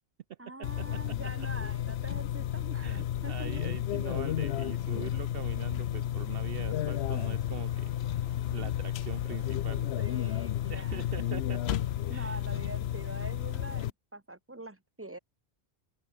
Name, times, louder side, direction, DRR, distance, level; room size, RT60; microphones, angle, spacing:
voice 1, 0.4-3.5 10.0-11.1 12.1-15.2, right 2 dB, 10° right, 1.6 m, -44 dB
sound 1, 0.6-13.9, left 12 dB, 70° left, 0.8 m, -32 dB
voice 2, 2.8-8.2 8.5-9.9 10.7-11.8 12.1-12.4, right 10 dB, 65° right, 0.8 m, -43 dB
sound 2, 7.2-13.6, left 1 dB, 55° left, 7.0 m, -62 dB
open air
omnidirectional pair, 1.1 m